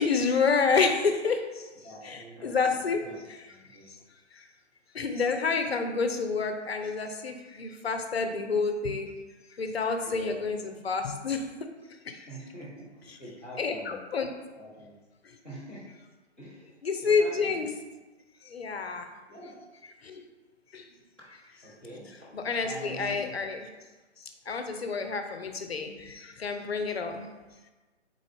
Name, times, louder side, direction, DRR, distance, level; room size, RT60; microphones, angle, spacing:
voice 1, 0.0-1.7 2.0-3.0 3.3-3.4 4.3-4.4 4.9-9.1 9.5-11.5 12.0-12.2 13.6-14.3 16.8-17.7 18.4-19.1 20.0-20.2 20.7-20.9 22.3-23.7 24.5-27.3, left 5 dB, 60° left, 5 dB, 0.6 m, -29 dB
voice 2, 1.8-3.2 3.5-3.9 10.0-10.4 10.7-10.8 12.3-14.0 14.6-14.9 15.4-15.9 16.4-16.7 17.0-17.6 19.3-19.5 21.5-22.3 22.6-23.3, right 1 dB, 10° right, -15 dB, 0.6 m, -45 dB
3.8 x 3.7 x 3.3 m, 1.2 s
figure-of-eight pair, 140°, 36 cm